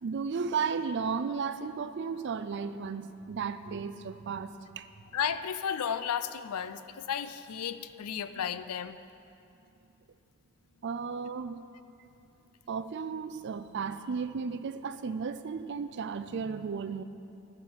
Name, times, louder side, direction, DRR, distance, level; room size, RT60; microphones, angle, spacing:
voice 1, 0.0-4.9 10.8-11.6 12.7-17.0, right 5 dB, 50° right, 12 dB, 0.4 m, -34 dB
voice 2, 5.1-9.0, left 8 dB, 85° left, 12 dB, 0.5 m, -33 dB
10.5 x 5.8 x 8.7 m, 2.7 s
head